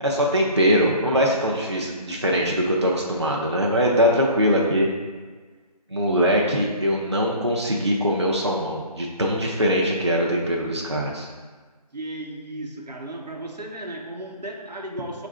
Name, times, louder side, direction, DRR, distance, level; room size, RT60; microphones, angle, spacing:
voice 1, 0.0-4.9 5.9-11.3, equal, 45° right, -2 dB, 0.4 m, -22 dB
voice 2, 3.8-4.2 11.9-15.3, right 1 dB, 85° right, 1 dB, 0.7 m, -35 dB
4.5 x 2.5 x 4.2 m, 1.4 s
figure-of-eight pair, 175°, 21 cm